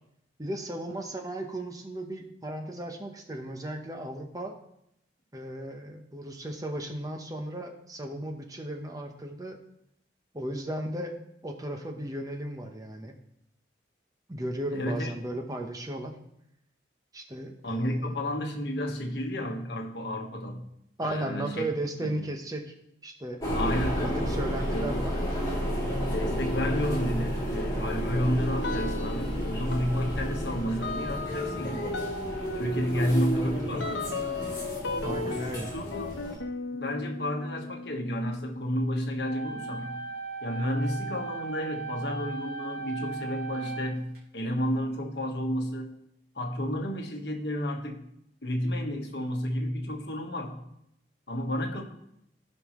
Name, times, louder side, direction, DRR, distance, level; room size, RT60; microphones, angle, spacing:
voice 1, 0.4-4.6 5.3-9.6 10.3-13.1 14.3-16.1 17.1-18.2 21.0-22.7 23.0-23.4 24.0-25.1 32.9-33.6 35.0-35.7, right 1 dB, 20° right, 3 dB, 0.9 m, -35 dB
voice 2, 14.7-15.1 17.6-20.6 21.0-21.7 22.0-22.2 23.5-24.1 24.7-25.0 26.1-31.9 32.5-33.8 35.0-36.1 36.7-39.9 40.4-46.0 46.3-48.1 48.4-50.6 51.3-51.8, equal, 65° left, 2 dB, 1.4 m, -31 dB
sound 1, 23.4-36.4, equal, 20° left, 2.9 m, -31 dB
sound 2, 28.6-29.4 29.7-40.0, left 4 dB, 85° left, 0.9 m, -38 dB
sound 3, 39.2-44.2, right 4 dB, 55° right, 3.2 m, -37 dB
15.5 x 5.5 x 3.1 m, 0.77 s
head